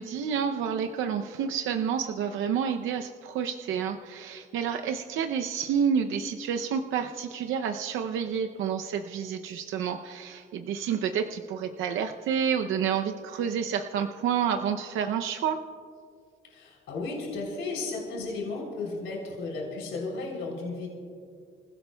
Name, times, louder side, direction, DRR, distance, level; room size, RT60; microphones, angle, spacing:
voice 1, 0.0-15.6, right 7 dB, 85° right, 5 dB, 0.6 m, -29 dB
voice 2, 16.5-20.9, left 3 dB, 85° left, -2 dB, 3.4 m, -34 dB
27.0 x 16.0 x 2.3 m, 2.2 s
cardioid pair, 90°, 20 cm